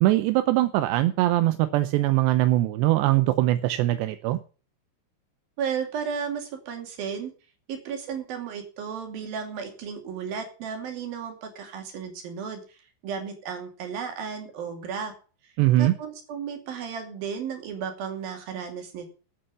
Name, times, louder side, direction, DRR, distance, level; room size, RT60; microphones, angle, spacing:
voice 1, 0.0-4.4 15.6-15.9, right 16 dB, 80° right, 11 dB, 2.7 m, -22 dB
voice 2, 5.6-7.3 7.7-12.8 13.0-15.1 15.8-19.1, right 7 dB, 55° right, 5 dB, 4.1 m, -34 dB
12.5 x 8.6 x 6.9 m, 0.37 s
omnidirectional pair, 5.4 m